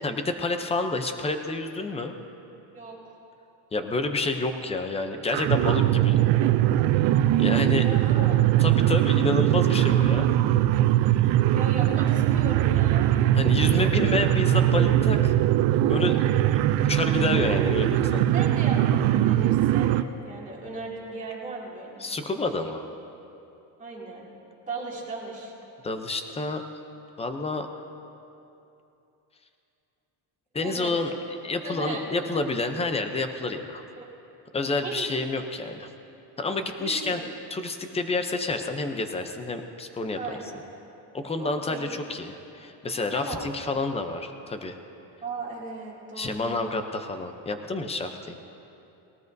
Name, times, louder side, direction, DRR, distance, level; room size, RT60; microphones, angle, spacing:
voice 1, 0.0-2.1 3.7-6.1 7.4-7.9 8.6-10.3 13.3-15.3 15.8-16.6 16.9-18.3 22.0-22.8 25.8-26.6 27.2-27.8 30.5-31.1 31.4-33.8 34.5-35.9 36.4-37.2 37.5-40.4 41.1-44.8 46.1-48.4, left 3 dB, 15° left, 7 dB, 0.6 m, -29 dB
sound 1, 5.3-20.0, right 13 dB, 75° right, 0.6 m, -21 dB
voice 2, 6.4-6.9 7.8-8.4 11.5-13.1 18.3-20.0 20.2-22.2 23.8-24.3 24.7-25.5 30.6-30.9 31.6-32.1 34.0-34.1 34.8-35.1 36.8-37.1 40.2-40.6 41.4-41.9 43.1-43.5 45.2-46.7, right 3 dB, 15° right, -6 dB, 2.6 m, -37 dB
20.0 x 18.5 x 2.7 m, 2.8 s
cardioid pair, 165°, 45 cm